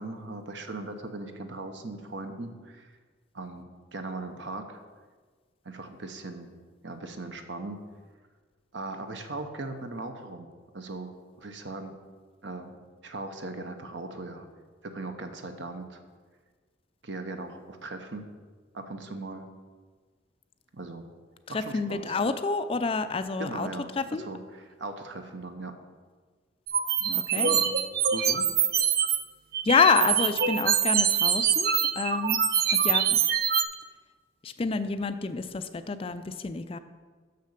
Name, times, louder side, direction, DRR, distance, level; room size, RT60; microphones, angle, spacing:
voice 1, 0.0-3.0 3.3-4.8 5.6-6.5 6.8-7.8 8.7-10.5 10.7-11.1 11.4-11.9 12.4-12.8 13.0-14.5 14.8-16.0 17.0-18.3 18.7-19.5 20.7-21.1 21.5-22.2 23.4-25.7 27.3-27.7 28.1-28.5, right 2 dB, 70° right, 6 dB, 0.9 m, -39 dB
voice 2, 21.5-23.7 23.9-24.3 27.0-27.6 29.6-32.4 32.8-33.2 34.4-36.8, left 5 dB, 30° left, 10 dB, 0.3 m, -28 dB
sound 1, 26.7-29.2 29.5-33.6, right 8 dB, 50° right, 0.5 m, -24 dB
6.7 x 6.5 x 6.5 m, 1.4 s
head